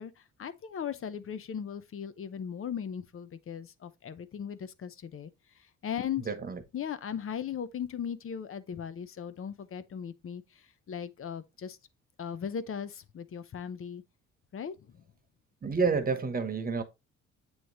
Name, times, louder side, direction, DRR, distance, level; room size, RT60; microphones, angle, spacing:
voice 1, 0.0-5.3 5.8-6.3 6.7-11.8 12.2-14.0 14.5-15.0, left 8 dB, 45° left, 0.7 m, -38 dB
voice 2, 6.3-6.6 15.6-16.8, right 4 dB, 30° right, 1.2 m, -29 dB
7.9 x 3.1 x 4.0 m
cardioid pair, 90°, 30 cm